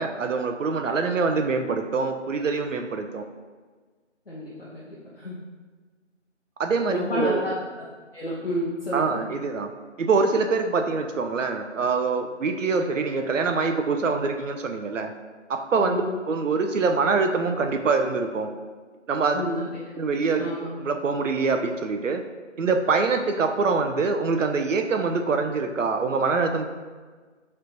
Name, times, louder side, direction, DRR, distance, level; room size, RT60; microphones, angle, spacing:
voice 1, 0.0-3.2 6.6-7.4 8.9-9.7 10.0-15.1 15.5-18.5 19.1-19.4 20.0-20.5 20.8-22.2 22.6-26.7, right 4 dB, 85° right, 5 dB, 0.6 m, -24 dB
voice 2, 4.3-5.4 6.9-7.9 8.1-9.2 15.8-16.2 19.3-19.7 20.3-20.7, left 1 dB, 50° left, -7 dB, 0.8 m, -30 dB
4.5 x 3.2 x 2.6 m, 1.4 s
figure-of-eight pair, 180°, 37 cm